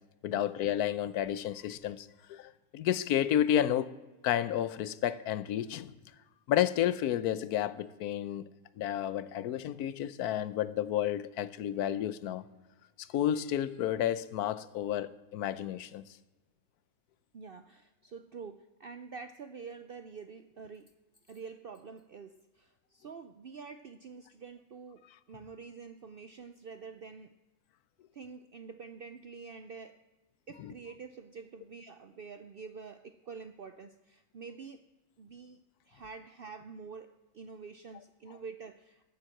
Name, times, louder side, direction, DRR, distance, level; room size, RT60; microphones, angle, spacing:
voice 1, 0.2-3.9 4.2-5.9 6.5-8.4 8.8-12.4 13.0-16.0 30.6-30.7, left 11 dB, 75° left, 1.1 m, -31 dB
voice 2, 17.3-20.9 21.3-27.3 28.1-30.0 30.5-34.8 35.2-35.6 35.9-39.1, right 5 dB, 70° right, 0.5 m, -47 dB
14.0 x 7.6 x 7.7 m
omnidirectional pair, 1.6 m